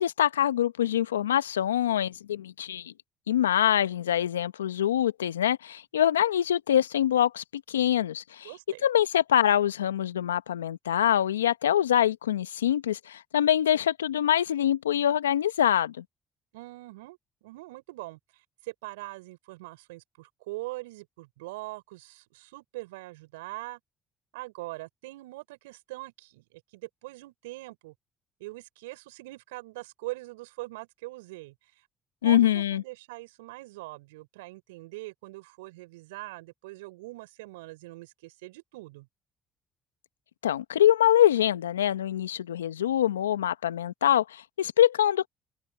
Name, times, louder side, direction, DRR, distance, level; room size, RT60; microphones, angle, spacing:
voice 1, 0.0-2.9 3.3-8.5 8.8-16.0 32.2-32.8 40.4-45.3, left 11 dB, 90° left, 1.1 m, -24 dB
voice 2, 8.4-8.9 16.5-18.2 18.6-23.8 24.3-27.9 28.4-31.5 32.2-39.1, right 21 dB, 80° right, 6.7 m, -42 dB
hypercardioid pair, 50°, 0 cm